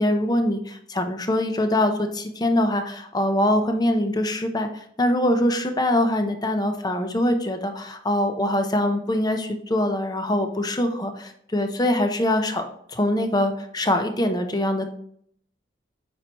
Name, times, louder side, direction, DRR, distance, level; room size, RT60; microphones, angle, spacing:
voice 1, 0.0-14.8, left 1 dB, 20° left, 6 dB, 0.7 m, -23 dB
8.5 x 4.5 x 3.0 m, 0.68 s
head